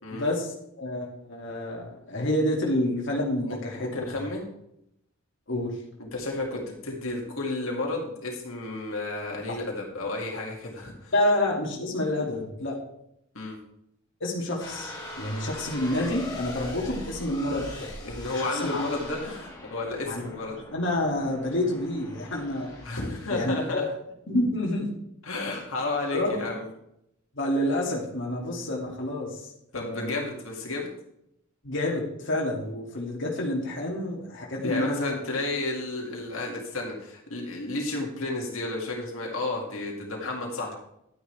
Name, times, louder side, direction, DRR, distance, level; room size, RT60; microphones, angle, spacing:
voice 1, 0.1-3.9 4.2-4.3 5.5-5.8 9.5-9.6 11.1-12.8 14.2-17.9 18.5-18.8 20.0-20.3 20.7-22.7 23.3-23.8 24.3-24.9 26.1-26.5 27.3-30.3 31.6-35.2, left 1 dB, 65° left, -2 dB, 2.4 m, -28 dB
voice 2, 3.5-4.5 6.0-11.1 13.3-13.6 18.0-20.6 22.8-23.8 25.2-26.7 29.7-30.9 34.6-40.7, left 2 dB, 90° left, -1 dB, 2.3 m, -32 dB
sound 1, 14.6-23.5, left 1 dB, 20° left, 3.6 m, -41 dB
11.5 x 9.6 x 3.4 m, 0.78 s
head